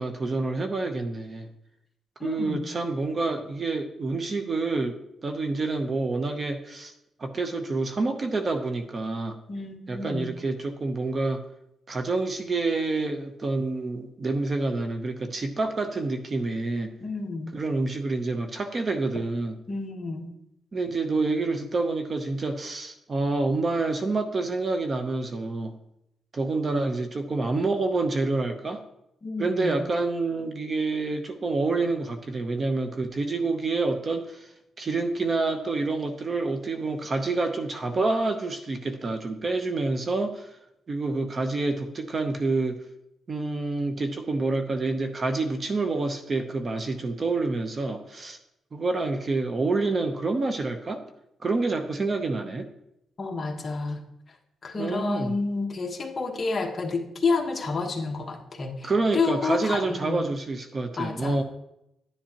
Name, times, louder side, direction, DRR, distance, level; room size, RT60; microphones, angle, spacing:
voice 1, 0.0-1.5 2.2-6.9 7.2-9.4 9.9-11.4 11.9-16.9 17.5-19.6 20.7-25.7 26.3-28.8 29.4-40.5 40.9-42.8 43.3-48.4 48.7-51.0 51.4-52.7 54.8-55.3 58.8-61.4, right 3 dB, 30° right, 6 dB, 0.8 m, -28 dB
voice 2, 2.2-2.7 9.5-10.3 17.0-17.6 19.7-20.3 29.2-29.8 53.2-54.0 54.6-60.3 61.0-61.4, left 4 dB, 30° left, 1 dB, 1.2 m, -30 dB
11.0 x 10.0 x 2.9 m, 0.83 s
cardioid pair, 135°, 0 cm